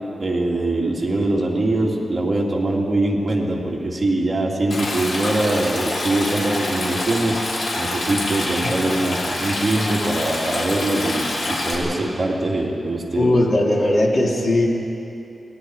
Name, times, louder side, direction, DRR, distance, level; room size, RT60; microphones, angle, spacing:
voice 1, 0.2-13.4, right 2 dB, 30° right, -3 dB, 3.1 m, -22 dB
Stream, 4.7-11.7, left 2 dB, 75° left, 5.4 m, -26 dB
voice 2, 13.2-14.7, left 1 dB, 50° left, 0 dB, 2.7 m, -18 dB
28.5 x 20.5 x 5.0 m, 2.7 s
wide cardioid pair, 125°, 0 cm